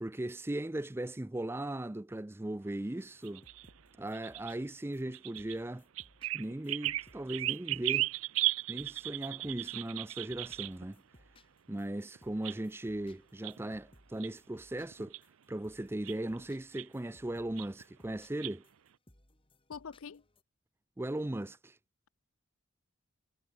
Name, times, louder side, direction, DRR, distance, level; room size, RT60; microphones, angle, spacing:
voice 1, 0.0-3.4 4.0-5.8 6.3-8.1 8.7-11.0 11.7-15.1 15.5-18.6 21.0-21.8, right 1 dB, 10° right, 0.4 m, -38 dB
sound 1, 2.9-20.4, left 1 dB, 25° left, 4.3 m, -64 dB
sound 2, 3.2-4.6 5.1-5.6 6.0-10.9 12.2-12.6 12.9-13.0 13.4-13.9 14.2-14.3 14.9-15.2 16.0-16.4 16.7-16.9 17.6-17.8 18.4-18.6, right 17 dB, 70° right, 0.4 m, -36 dB
voice 2, 19.7-20.2, left 6 dB, 65° left, 0.5 m, -44 dB
head